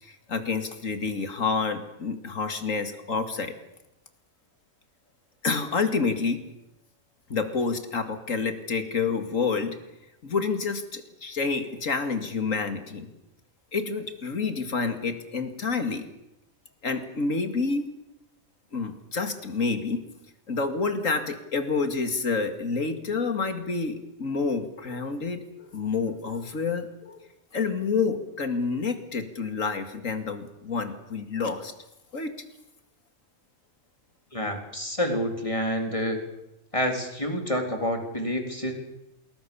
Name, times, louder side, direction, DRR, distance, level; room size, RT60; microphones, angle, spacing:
voice 1, 0.0-3.6 5.4-6.4 7.3-9.8 10.2-13.1 13.7-16.1 16.8-17.8 18.7-20.0 20.5-31.7 32.1-32.3, left 4 dB, 85° left, 8 dB, 2.6 m, -28 dB
voice 2, 34.3-36.2 36.7-38.7, equal, 25° left, 3 dB, 3.9 m, -28 dB
28.5 x 21.0 x 7.1 m, 0.91 s
omnidirectional pair, 1.3 m